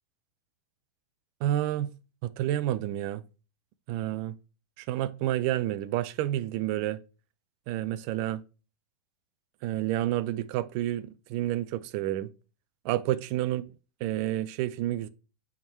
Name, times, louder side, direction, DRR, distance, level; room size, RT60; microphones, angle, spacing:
voice 1, 1.4-1.9 2.2-3.2 3.9-4.4 4.8-7.0 7.7-8.4 9.6-12.3 12.8-13.6 14.0-15.1, right 13 dB, 40° right, 0.5 m, -29 dB
8.6 x 3.6 x 3.1 m
hypercardioid pair, 140°, 14 cm